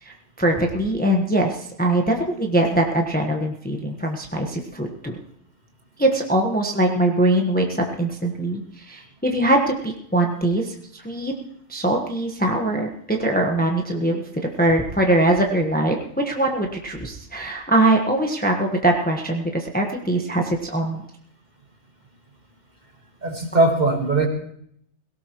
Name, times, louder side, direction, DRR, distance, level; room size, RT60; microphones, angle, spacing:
voice 1, 0.0-5.2 6.0-11.3 11.7-21.0, right 1 dB, 5° left, 2 dB, 1.2 m, -22 dB
voice 2, 23.2-24.3, right 2 dB, 30° right, 3 dB, 1.7 m, -19 dB
18.0 x 17.0 x 3.1 m, 0.69 s
omnidirectional pair, 1.5 m